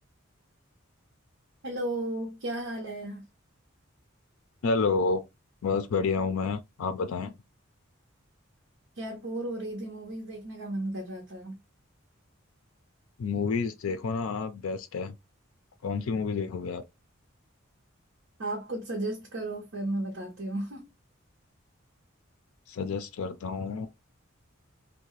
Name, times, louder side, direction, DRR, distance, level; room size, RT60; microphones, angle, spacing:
voice 1, 1.6-3.2 9.0-11.6 18.4-20.8, right 1 dB, 70° right, 0.7 m, -34 dB
voice 2, 4.6-5.2 5.6-7.3 13.2-15.1 15.8-16.8 22.7-23.9, left 4 dB, 85° left, 0.4 m, -29 dB
2.7 x 2.1 x 2.9 m
head